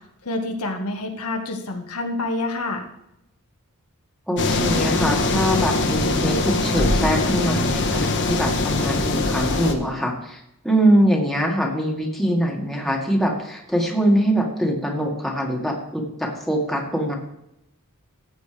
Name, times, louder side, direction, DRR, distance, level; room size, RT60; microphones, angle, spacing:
voice 1, 0.2-2.8, left 2 dB, 85° left, 3 dB, 1.5 m, -27 dB
voice 2, 4.3-17.1, equal, ahead, -1 dB, 1.9 m, -23 dB
sound 1, 4.4-9.7, left 2 dB, 55° left, 1.3 m, -22 dB
14.5 x 8.4 x 3.4 m, 0.83 s
head